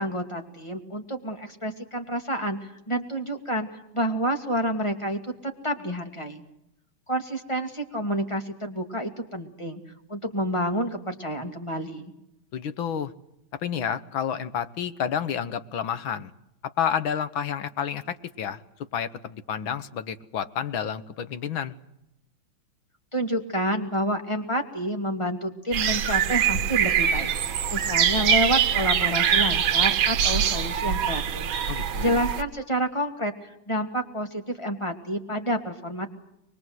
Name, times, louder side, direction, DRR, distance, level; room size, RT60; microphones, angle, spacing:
voice 1, 0.0-6.4 7.1-9.8 10.1-12.1 23.1-27.3 27.7-31.5 32.0-36.1, equal, 15° left, 4 dB, 2.4 m, -29 dB
voice 2, 12.5-13.1 13.6-16.3 16.8-18.6 18.9-21.8 31.7-32.2, left 8 dB, 85° left, 12 dB, 2.0 m, -30 dB
sound 1, 25.7-32.4, right 8 dB, 85° right, 1.9 m, -23 dB
23.5 x 22.0 x 7.9 m, 0.82 s
omnidirectional pair, 2.1 m